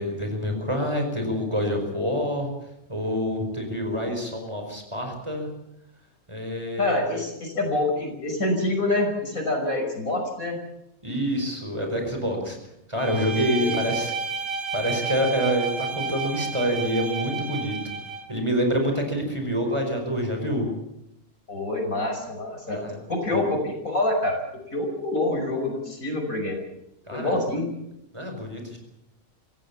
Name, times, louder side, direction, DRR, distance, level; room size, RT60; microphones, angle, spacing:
voice 1, 0.0-2.5 2.9-5.5 6.3-7.0 11.0-12.6 12.9-14.1 14.7-18.0 18.3-20.7 22.7-23.0 23.3-23.4 27.1-27.5 28.1-28.8, equal, 20° right, 3 dB, 5.2 m, -27 dB
voice 2, 6.8-10.6 13.6-13.8 14.0-14.1 21.5-22.8 23.1-24.4 24.7-26.6 27.1-27.7, left 2 dB, 70° left, 3 dB, 6.1 m, -26 dB
Bowed string instrument, 13.0-18.3, right 4 dB, 65° right, 3.0 m, -31 dB
25.5 x 16.5 x 7.3 m, 0.84 s
omnidirectional pair, 1.5 m